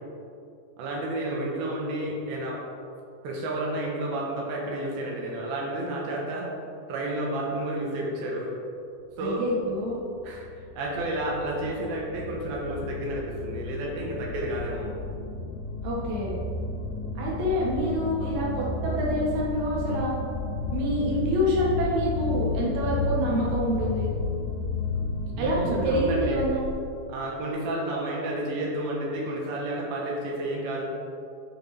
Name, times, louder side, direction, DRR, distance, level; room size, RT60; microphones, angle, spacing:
voice 1, 0.8-2.6 3.2-6.5 6.9-8.5 9.2-9.4 10.2-10.5 10.8-14.9 25.4-26.4 27.1-30.8, right 1 dB, 85° right, -3 dB, 2.9 m, -31 dB
sound 1, 9.2-26.8, left 3 dB, 70° left, 1.5 m, -32 dB
voice 2, 9.2-10.0 15.8-16.4 17.2-20.2 20.7-24.1 25.4-26.7, equal, 60° right, -5 dB, 2.6 m, -27 dB
12.5 x 4.4 x 3.3 m, 2.6 s
omnidirectional pair, 4.2 m